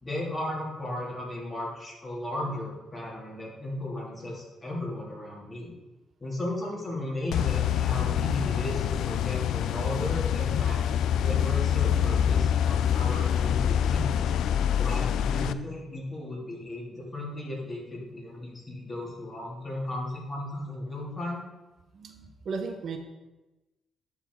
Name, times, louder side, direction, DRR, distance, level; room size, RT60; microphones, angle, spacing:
voice 1, 0.0-5.7 6.2-10.8 11.2-14.2 14.8-21.4, left 1 dB, 25° left, -4 dB, 3.1 m, -35 dB
sound 1, 7.3-15.5, left 9 dB, 80° left, 0.3 m, -26 dB
voice 2, 21.9-23.0, right 4 dB, 55° right, 5 dB, 0.9 m, -35 dB
11.0 x 4.1 x 4.7 m, 1.1 s
cardioid pair, 90°, 0 cm